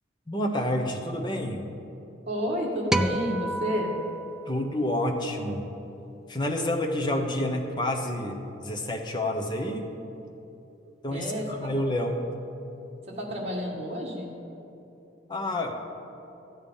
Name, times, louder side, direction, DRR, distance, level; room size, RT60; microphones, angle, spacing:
voice 1, 0.3-1.7 4.5-5.6 6.3-9.9 11.0-12.3 15.3-15.8, left 1 dB, 25° left, 2 dB, 1.0 m, -29 dB
voice 2, 2.3-3.9 11.1-11.5 13.1-14.3, equal, 35° right, -4 dB, 1.7 m, -30 dB
sound 1, 2.9-5.4, right 1 dB, 5° right, 0.4 m, -31 dB
13.0 x 8.8 x 5.5 m, 2.9 s
head